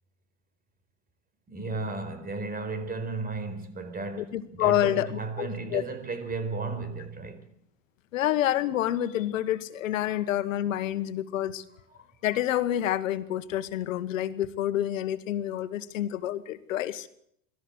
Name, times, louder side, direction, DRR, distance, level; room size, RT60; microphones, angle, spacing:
voice 1, 1.5-7.5, right 3 dB, 25° right, 4.5 m, -34 dB
voice 2, 4.2-5.8 8.1-11.6 12.2-17.1, left 12 dB, 90° left, 1.5 m, -28 dB
25.0 x 14.0 x 8.0 m
supercardioid pair, 110°, 38 cm